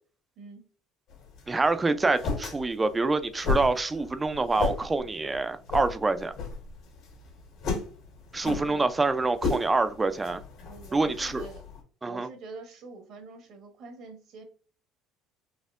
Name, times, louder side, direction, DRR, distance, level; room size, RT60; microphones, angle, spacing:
sound 1, 1.1-11.8, left 4 dB, 65° left, 1.7 m, -35 dB
voice 1, 1.5-6.3 8.3-10.4 10.9-11.4 12.0-12.3, right 3 dB, 15° right, 0.4 m, -26 dB
voice 2, 10.6-11.6 12.0-14.4, right 4 dB, 60° right, 0.9 m, -44 dB
4.2 x 2.6 x 2.4 m
cardioid pair, 115°, 0 cm